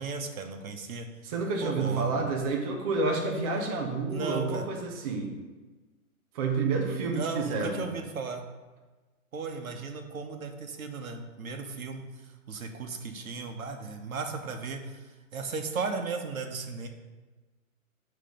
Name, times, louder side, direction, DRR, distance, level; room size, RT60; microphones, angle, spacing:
voice 1, 0.0-1.1 1.6-2.2 4.1-4.7 7.1-8.4 9.3-16.9, right 4 dB, 75° right, 4 dB, 1.1 m, -36 dB
voice 2, 1.2-5.3 6.3-7.8, right 3 dB, 25° right, 0 dB, 0.7 m, -29 dB
7.5 x 3.3 x 5.1 m, 1.2 s
hypercardioid pair, 150°, 42 cm